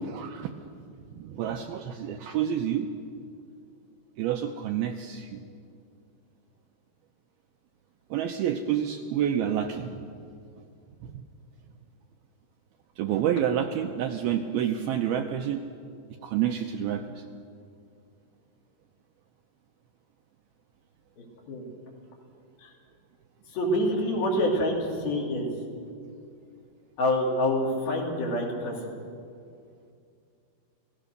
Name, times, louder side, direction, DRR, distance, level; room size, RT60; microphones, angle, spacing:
voice 1, 0.1-0.5 1.2-2.9 4.2-5.4 8.1-10.0 11.0-11.2 13.0-15.6 16.2-17.0, right 9 dB, 75° right, 4 dB, 2.3 m, -28 dB
voice 2, 21.2-21.7 22.6-22.7 23.5-25.5 27.0-28.7, left 1 dB, 60° left, -1 dB, 4.8 m, -27 dB
28.0 x 18.0 x 6.7 m, 2.4 s
omnidirectional pair, 5.2 m